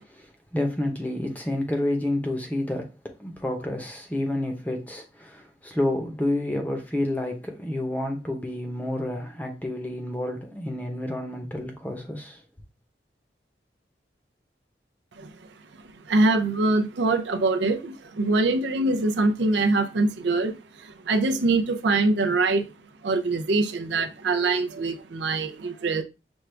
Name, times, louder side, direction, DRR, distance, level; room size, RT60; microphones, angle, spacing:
voice 1, 0.5-2.9 3.2-12.4, left 1 dB, 10° left, 0.7 m, -29 dB
voice 2, 16.1-22.7 23.0-26.0, right 3 dB, 80° right, 0.5 m, -24 dB
6.1 x 2.4 x 3.3 m
head